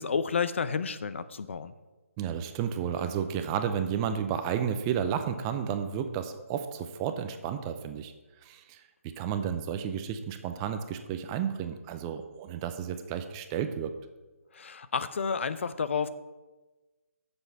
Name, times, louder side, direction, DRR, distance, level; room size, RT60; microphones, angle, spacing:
voice 1, 0.0-1.7 14.5-16.1, left 5 dB, 55° left, 13 dB, 0.6 m, -30 dB
voice 2, 2.2-8.1 8.4-8.8 9.2-13.9, right 8 dB, 15° right, 8 dB, 0.5 m, -32 dB
7.9 x 7.0 x 7.1 m, 1.2 s
figure-of-eight pair, 155°, 8 cm